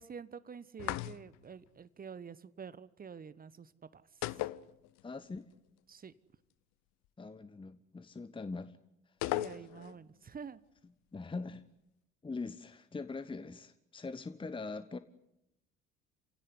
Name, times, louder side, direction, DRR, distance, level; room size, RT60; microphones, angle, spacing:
voice 1, 0.0-4.0 5.9-6.1 9.2-10.6, right 6 dB, 25° right, 16 dB, 1.1 m, -48 dB
sound 1, 0.8-1.5 4.2-5.3 5.5-5.6 9.2-10.0, left 17 dB, 55° left, 0.9 m, -37 dB
voice 2, 5.0-5.5 7.2-8.8 11.1-11.6 12.2-15.0, left 3 dB, 15° left, 13 dB, 1.1 m, -42 dB
28.0 x 17.0 x 9.9 m, 0.84 s
figure-of-eight pair, 55°, 34 cm